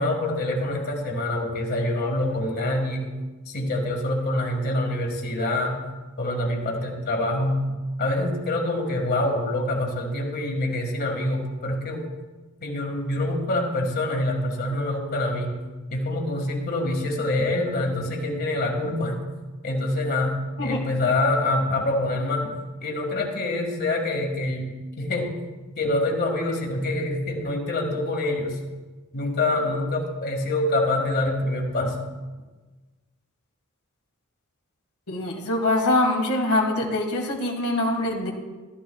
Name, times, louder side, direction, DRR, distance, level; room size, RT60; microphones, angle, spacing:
voice 1, 0.0-3.1 3.5-5.8 6.2-7.6 8.0-12.1 12.6-15.6 15.9-19.2 19.6-22.5 22.8-25.4 25.8-28.6 29.1-32.0, left 1 dB, 45° left, 2 dB, 1.8 m, -26 dB
voice 2, 35.1-38.3, left 2 dB, 90° left, 0 dB, 1.8 m, -24 dB
14.5 x 13.0 x 2.3 m, 1.3 s
head